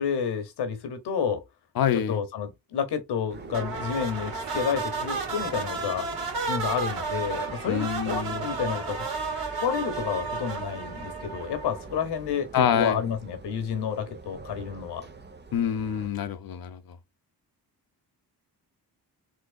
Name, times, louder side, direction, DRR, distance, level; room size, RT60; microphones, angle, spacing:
voice 1, 0.0-1.4 1.9-6.1 6.5-9.0 9.6-15.0, left 7 dB, 85° left, 1.2 m, -30 dB
voice 2, 1.8-2.2 7.7-8.5 12.5-13.0 15.5-16.8, left 8 dB, 60° left, 0.8 m, -26 dB
sound 1, 3.3-16.1, right 4 dB, 25° right, 0.8 m, -44 dB
sound 2, 3.5-12.0, right 4 dB, 65° right, 2.1 m, -32 dB
3.9 x 3.0 x 2.3 m
cardioid pair, 75°, 39 cm